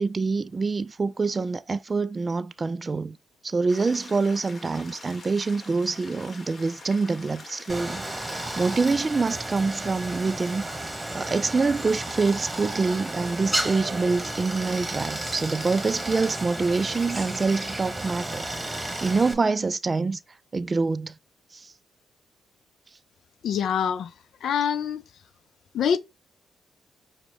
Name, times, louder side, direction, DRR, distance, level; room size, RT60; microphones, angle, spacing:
voice 1, 0.0-3.2 3.4-10.6 11.1-18.5 18.7-20.2 20.5-21.1 21.5-21.7, right 4 dB, 35° right, 0.4 m, -26 dB
sound 1, 3.7-8.8, left 3 dB, 45° left, 1.4 m, -45 dB
Stream, 7.7-19.3, right 1 dB, 15° right, 1.1 m, -33 dB
voice 2, 23.4-24.1 24.4-25.0 25.7-26.0, left 8 dB, 70° left, 0.4 m, -25 dB
6.0 x 2.1 x 3.5 m
hypercardioid pair, 45°, 0 cm